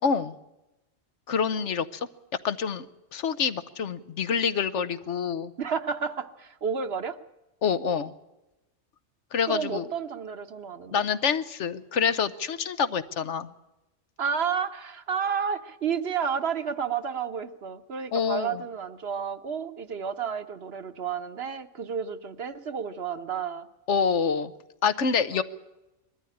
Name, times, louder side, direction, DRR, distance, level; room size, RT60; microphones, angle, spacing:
voice 1, 0.0-0.3 1.3-2.1 2.4-2.9 3.1-5.5 7.6-8.1 9.3-9.9 10.9-13.5 18.1-18.6 23.9-24.5 24.8-25.4, left 6 dB, 75° left, 13 dB, 1.2 m, -26 dB
voice 2, 5.6-7.2 9.5-11.1 14.2-23.7 25.3-25.4, right 6 dB, 60° right, 10 dB, 1.2 m, -31 dB
21.5 x 13.5 x 10.0 m, 0.98 s
omnidirectional pair, 1.2 m